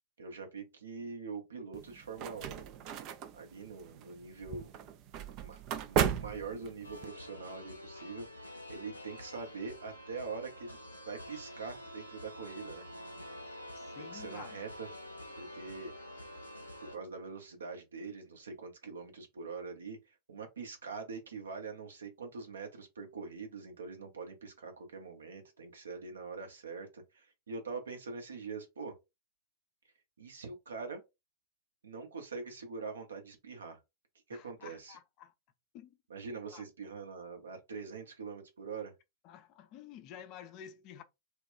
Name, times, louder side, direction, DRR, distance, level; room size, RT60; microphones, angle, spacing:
voice 1, 0.2-2.7 3.3-4.7 5.4-10.8 11.1-12.9 14.0-14.9 15.4-16.1 16.8-28.9 30.2-31.0 31.8-33.8 34.3-35.0 36.1-38.9, right 4 dB, 70° right, 0.7 m, -44 dB
sound 1, 1.7-7.1, right 8 dB, 40° right, 0.4 m, -36 dB
sound 2, 6.8-17.0, left 1 dB, 85° left, 0.6 m, -48 dB
voice 2, 13.7-14.6 34.3-35.3 35.7-36.0 36.5-36.6 39.2-41.0, left 9 dB, 40° left, 0.4 m, -51 dB
2.3 x 2.2 x 3.6 m
figure-of-eight pair, 90°, 0 cm